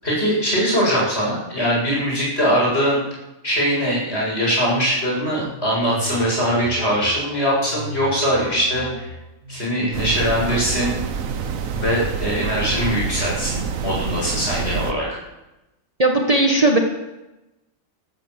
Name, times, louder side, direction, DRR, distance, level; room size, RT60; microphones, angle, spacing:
voice 1, 0.0-3.0 3.4-9.1 9.5-10.9 11.7-15.2, equal, 55° left, -5 dB, 8.3 m, -21 dB
sound 1, 5.4-13.5, right 1 dB, 45° right, 2.6 m, -35 dB
sound 2, 9.9-14.9, right 6 dB, 90° right, 1.4 m, -27 dB
voice 2, 16.0-16.8, right 2 dB, 30° right, 1 dB, 1.8 m, -16 dB
14.0 x 13.0 x 7.8 m, 0.98 s
omnidirectional pair, 1.4 m